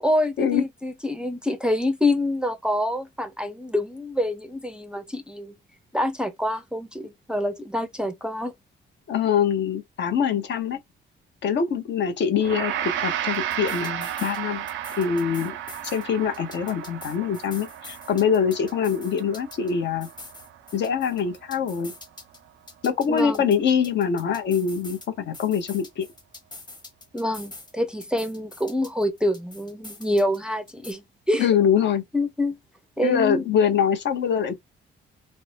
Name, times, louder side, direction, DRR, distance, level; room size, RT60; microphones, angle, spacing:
voice 1, 0.0-5.6 5.9-8.5 23.1-23.5 27.1-31.5 32.1-32.6 33.0-33.4, left 1 dB, 5° right, 0.4 m, -26 dB
voice 2, 9.1-10.8 11.4-14.7 15.0-15.6 15.9-20.1 20.7-21.9 22.8-26.1 31.4-32.0 33.0-34.5, left 7 dB, 65° left, 0.7 m, -24 dB
Gong, 12.4-21.8, right 11 dB, 75° right, 0.5 m, -33 dB
sound 1, 13.3-14.4 14.7-16.0 16.3-19.7 20.0-22.4 22.7-25.1 25.3-27.7 28.0-30.4 30.7-30.9, left 2 dB, 20° left, 0.9 m, -44 dB
2.6 x 2.0 x 3.1 m
cardioid pair, 90°, 20 cm